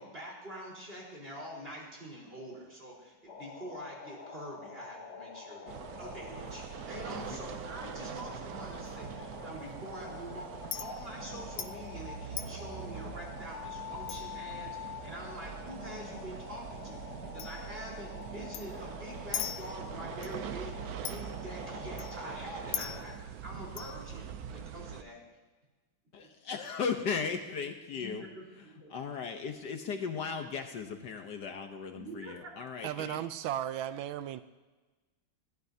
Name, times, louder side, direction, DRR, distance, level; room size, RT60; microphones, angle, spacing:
voice 1, 0.0-25.2 26.2-26.3 27.9-29.0 31.9-32.5, equal, 30° right, 4.4 m, -45 dB
sound 1, 3.3-23.2, left 6 dB, 45° left, 1.2 m, -47 dB
sound 2, 5.7-25.0, right 9 dB, 70° right, 0.9 m, -43 dB
Chink clink, 6.5-24.7, left 11 dB, 90° left, 1.5 m, -46 dB
voice 2, 26.1-28.3 28.6-33.2, left 5 dB, 65° left, 1.5 m, -37 dB
voice 3, 32.8-34.4, right 11 dB, 85° right, 1.4 m, -35 dB
20.5 x 15.0 x 2.8 m
omnidirectional pair, 2.1 m